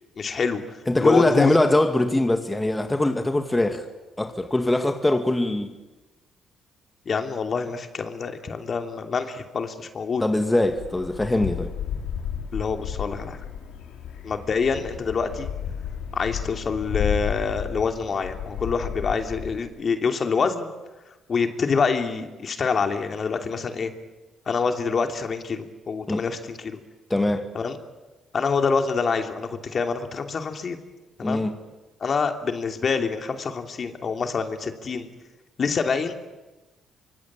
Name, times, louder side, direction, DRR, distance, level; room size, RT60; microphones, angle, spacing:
voice 1, 0.2-1.6 7.0-10.2 12.5-13.4 14.2-15.5 16.1-20.7 21.3-23.9 24.5-26.8 27.5-27.8 28.3-30.8 31.2-31.4 32.0-35.1 35.6-36.1, left 5 dB, 45° left, 2.9 m, -26 dB
voice 2, 0.9-3.9 4.2-5.8 10.2-11.7 26.1-26.2 27.1-27.5 31.2-31.6, left 1 dB, 15° left, 1.9 m, -22 dB
sound 1, 10.6-19.6, left 8 dB, 85° left, 4.0 m, -32 dB
25.0 x 24.5 x 8.8 m
cardioid pair, 90°, 0 cm